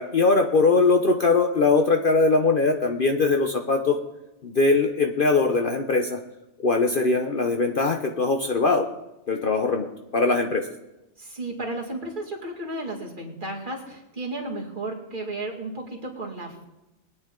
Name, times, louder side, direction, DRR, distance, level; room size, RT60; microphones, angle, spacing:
voice 1, 0.0-4.0 4.4-6.2 6.6-8.9 9.3-10.7, left 3 dB, 45° left, 4 dB, 0.9 m, -21 dB
voice 2, 11.2-16.7, right 2 dB, 35° right, -1 dB, 2.3 m, -33 dB
22.0 x 9.5 x 3.8 m, 0.95 s
omnidirectional pair, 1.4 m